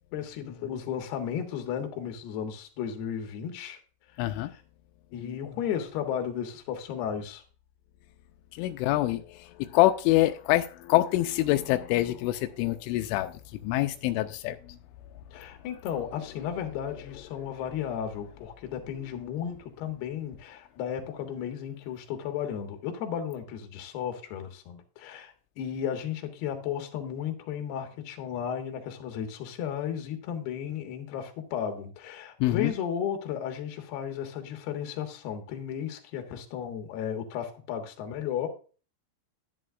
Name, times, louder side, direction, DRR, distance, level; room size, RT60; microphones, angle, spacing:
voice 1, 0.1-3.8 5.1-7.4 15.3-38.5, left 8 dB, 65° left, 3.2 m, -34 dB
voice 2, 4.2-4.5 8.5-14.8 17.4-17.5 32.4-32.7, left 16 dB, 85° left, 3.0 m, -26 dB
11.0 x 10.5 x 2.4 m
omnidirectional pair, 5.5 m